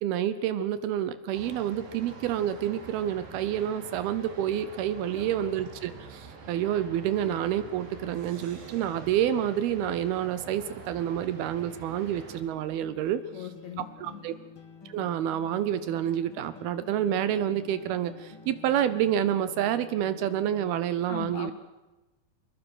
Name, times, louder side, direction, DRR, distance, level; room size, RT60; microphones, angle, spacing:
voice 1, 0.0-13.2 13.8-14.3 14.9-21.5, right 10 dB, 75° right, 13 dB, 2.5 m, -28 dB
sound 1, 1.3-12.4, right 4 dB, 55° right, 4.7 m, -46 dB
sound 2, 12.8-20.8, left 4 dB, 40° left, 2.3 m, -49 dB
voice 2, 13.3-14.2 21.1-21.5, left 8 dB, 80° left, 8 dB, 1.5 m, -39 dB
24.0 x 21.0 x 6.2 m, 1.1 s
omnidirectional pair, 5.0 m